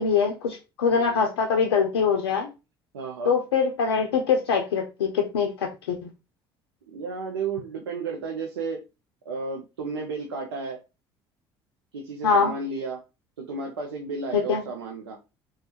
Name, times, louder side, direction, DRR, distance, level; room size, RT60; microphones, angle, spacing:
voice 1, 0.0-2.5 3.3-6.1 12.2-12.5 14.3-14.6, left 5 dB, 85° left, 2 dB, 0.4 m, -23 dB
voice 2, 0.9-1.2 2.9-3.3 6.9-8.8 9.3-10.8 11.9-13.0 13.4-15.2, right 4 dB, 85° right, 1 dB, 0.5 m, -33 dB
3.1 x 2.2 x 3.0 m, 0.28 s
hypercardioid pair, 60°, 13 cm